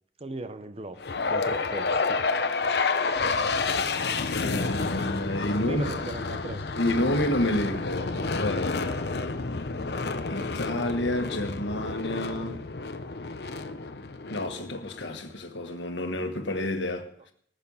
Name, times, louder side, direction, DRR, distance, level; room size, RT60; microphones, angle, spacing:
voice 1, 0.2-2.2 5.6-6.8, right 2 dB, 35° right, 0.7 m, -38 dB
sound 1, 1.0-15.2, left 4 dB, 65° left, 0.8 m, -30 dB
voice 2, 4.3-6.0 6.8-8.9 10.3-12.6 14.3-17.1, left 1 dB, 85° left, 1.6 m, -29 dB
19.5 x 6.7 x 5.6 m
head